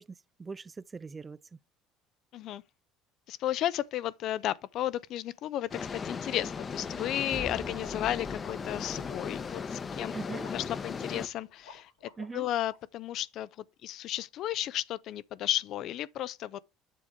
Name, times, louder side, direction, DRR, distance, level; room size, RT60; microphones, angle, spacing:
voice 1, 0.0-1.4 10.1-10.5 12.2-12.5, right 4 dB, 25° right, 0.3 m, -41 dB
voice 2, 3.3-10.1 10.5-11.9 12.3-13.5 13.8-16.6, left 13 dB, 60° left, 0.5 m, -33 dB
sound 1, 5.7-11.3, left 5 dB, 35° left, 0.8 m, -37 dB
sound 2, 6.3-10.2, left 2 dB, 5° left, 1.2 m, -47 dB
sound 3, 7.7-12.8, left 5 dB, 85° left, 2.0 m, -55 dB
7.6 x 3.5 x 6.4 m
hypercardioid pair, 65°, 0 cm